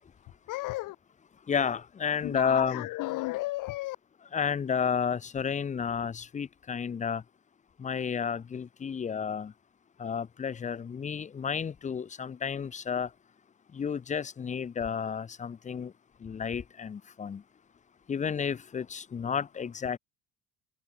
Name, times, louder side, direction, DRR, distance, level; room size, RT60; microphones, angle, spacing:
voice 1, 0.5-1.0 2.2-4.0, left 19 dB, 70° left, 1.8 m, -34 dB
voice 2, 1.5-2.8 4.3-7.2 7.8-9.5 10.0-13.1 13.7-15.9 16.2-17.4 18.1-20.0, left 7 dB, 20° left, 0.8 m, -31 dB
cardioid pair, 130°, 33 cm